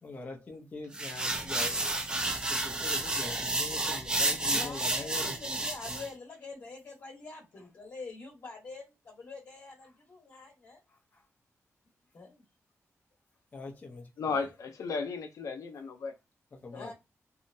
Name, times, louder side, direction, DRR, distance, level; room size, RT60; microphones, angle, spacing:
voice 1, 0.0-2.0 2.5-5.4 10.9-11.3 13.5-14.4 16.5-16.9, left 3 dB, 30° left, 0.6 m, -43 dB
sound 1, 0.9-6.1, right 2 dB, 15° right, 0.4 m, -31 dB
voice 2, 4.5-10.8 12.1-12.4 16.7-16.9, left 3 dB, 55° left, 1.1 m, -45 dB
voice 3, 14.2-16.1 16.7-16.9, left 5 dB, 80° left, 0.6 m, -35 dB
2.8 x 2.1 x 2.6 m
wide cardioid pair, 175°, 5 cm